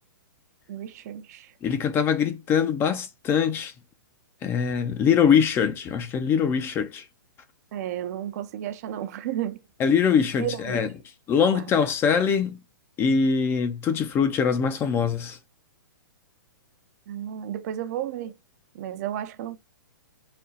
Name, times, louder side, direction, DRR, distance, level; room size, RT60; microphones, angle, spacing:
voice 1, 0.7-1.5 7.7-9.6 10.4-10.9 11.5-11.7 17.1-18.3 18.7-19.6, right 11 dB, 50° right, 0.6 m, -32 dB
voice 2, 1.6-3.7 4.4-7.0 9.8-10.9 11.3-12.6 13.0-15.4, left 7 dB, 20° left, 0.5 m, -23 dB
4.1 x 2.3 x 3.7 m
hypercardioid pair, 140°, 11 cm